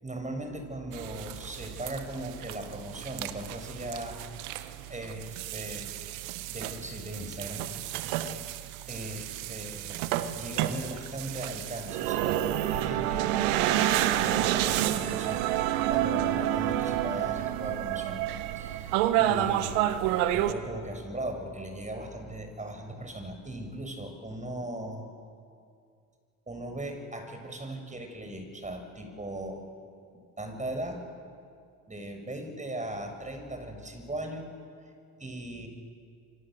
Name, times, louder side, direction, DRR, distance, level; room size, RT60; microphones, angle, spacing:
voice 1, 0.0-4.2 4.9-5.9 6.5-8.0 8.9-13.3 14.2-15.5 15.9-18.3 18.6-19.9 20.3-25.0 26.5-29.6 30.1-31.0 31.9-34.5 35.2-35.7, right 1 dB, 15° right, 6 dB, 6.8 m, -38 dB
sound 1, 0.9-20.5, right 12 dB, 80° right, 1.5 m, -30 dB
27.5 x 25.0 x 7.9 m, 2.3 s
supercardioid pair, 75°, 41 cm